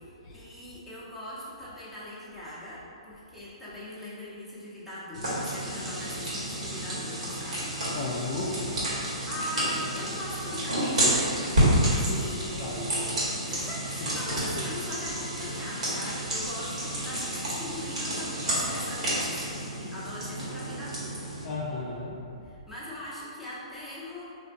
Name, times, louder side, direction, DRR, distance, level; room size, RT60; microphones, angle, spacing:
voice 1, 0.3-7.7 9.0-12.5 13.5-21.3 22.4-24.3, left 1 dB, ahead, -10 dB, 0.8 m, -40 dB
sound 1, 5.1-21.4, right 1 dB, 80° right, 1.4 m, -30 dB
voice 2, 7.9-8.8 12.1-13.0 14.0-14.1 21.4-22.3, left 3 dB, 35° left, -5 dB, 0.4 m, -35 dB
3.6 x 2.6 x 2.5 m, 2.5 s
hypercardioid pair, 130°, 3 cm